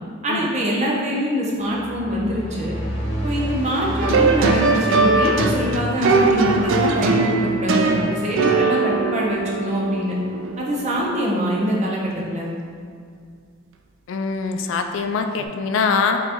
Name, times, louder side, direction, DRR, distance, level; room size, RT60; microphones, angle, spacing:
voice 1, 0.2-2.7 3.2-10.2 10.6-12.5, equal, 35° right, -3 dB, 0.7 m, -24 dB
sound 1, 1.6-8.2, equal, 30° left, 0.9 m, -30 dB
sound 2, 4.0-10.8 15.4-15.5, right 3 dB, 65° right, 0.3 m, -20 dB
voice 2, 14.1-16.2, left 5 dB, 70° left, 6 dB, 0.3 m, -23 dB
4.3 x 3.7 x 2.9 m, 2.2 s
head